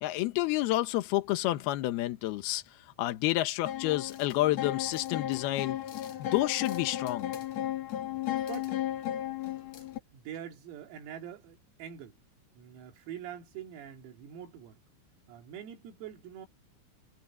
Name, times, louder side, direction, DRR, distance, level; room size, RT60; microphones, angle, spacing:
voice 1, 0.0-2.6 3.0-5.8 6.2-7.3, left 16 dB, 85° left, 2.2 m, -29 dB
sound 1, 3.7-10.0, left 12 dB, 60° left, 1.9 m, -35 dB
voice 2, 10.1-12.2 12.6-14.8 15.3-16.5, right 9 dB, 80° right, 5.4 m, -44 dB
omnidirectional pair, 6.0 m